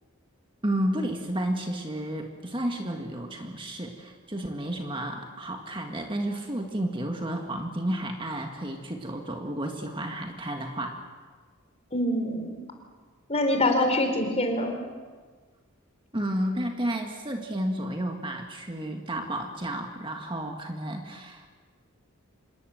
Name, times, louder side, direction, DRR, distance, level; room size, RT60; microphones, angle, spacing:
voice 1, 0.6-11.0 16.1-21.5, right 1 dB, 25° right, 3 dB, 1.8 m, -31 dB
voice 2, 11.9-12.6 13.3-14.8, left 1 dB, 30° left, 4 dB, 3.9 m, -25 dB
26.5 x 21.0 x 7.9 m, 1.4 s
head